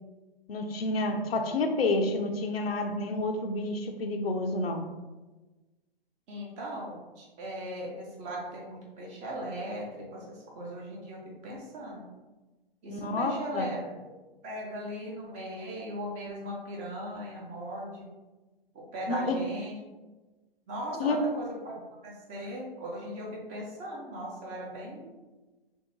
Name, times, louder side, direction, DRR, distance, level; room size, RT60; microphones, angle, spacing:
voice 1, 0.5-4.9 12.9-13.7 19.1-19.4 21.0-21.2, left 2 dB, 80° left, 4 dB, 0.6 m, -29 dB
voice 2, 6.3-12.0 12.8-14.1 14.4-18.1 18.7-19.7 20.7-25.1, right 1 dB, 25° right, -3 dB, 0.8 m, -38 dB
3.1 x 2.7 x 3.0 m, 1.2 s
hypercardioid pair, 130°, 30 cm